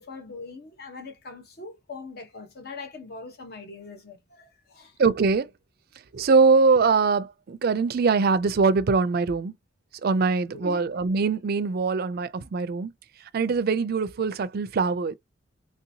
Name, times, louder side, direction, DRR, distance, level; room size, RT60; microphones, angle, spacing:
voice 1, 0.0-5.0 10.5-10.8, left 3 dB, 50° left, 0.9 m, -41 dB
voice 2, 5.0-5.5 6.1-9.5 10.0-12.9 13.3-15.1, right 4 dB, 50° right, 0.4 m, -22 dB
3.2 x 2.8 x 2.7 m
head